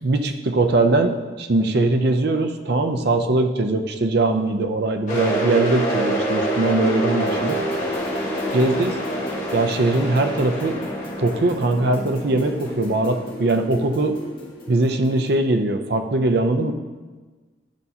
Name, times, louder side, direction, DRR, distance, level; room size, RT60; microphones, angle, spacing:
voice 1, 0.0-7.6 8.5-8.9 9.5-10.9 11.2-14.2 14.7-16.7, right 2 dB, 55° right, 6 dB, 0.6 m, -21 dB
sound 1, 5.1-12.7, right 1 dB, 40° left, 1.8 m, -26 dB
sound 2, 7.2-15.5, left 1 dB, 25° left, 2.1 m, -35 dB
11.5 x 5.4 x 2.8 m, 1.3 s
head